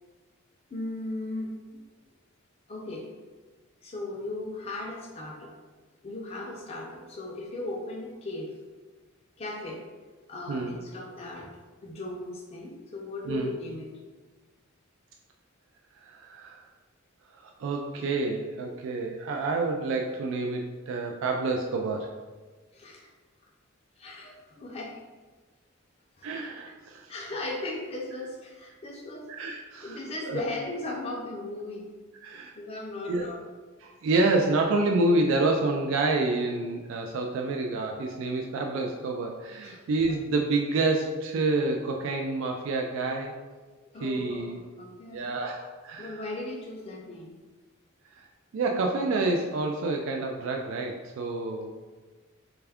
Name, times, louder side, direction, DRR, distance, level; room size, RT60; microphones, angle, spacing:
voice 1, 0.7-1.6 2.7-3.1 3.8-5.5 6.0-8.5 9.4-9.8 10.3-11.5 11.8-14.0 22.7-23.1 24.0-25.0 26.2-26.7 27.1-29.3 29.8-31.9 32.5-33.4 39.6-39.8 43.9-45.2 46.0-47.4, left 2 dB, 30° left, -2 dB, 0.4 m, -37 dB
voice 2, 16.0-16.6 17.3-22.1 26.2-27.1 29.3-30.0 30.3-30.4 32.2-32.5 33.1-33.3 33.8-43.3 44.0-44.6 45.1-46.2 48.2-48.3 48.5-51.7, right 2 dB, 65° right, 2 dB, 0.3 m, -28 dB
3.4 x 2.3 x 3.4 m, 1.3 s
head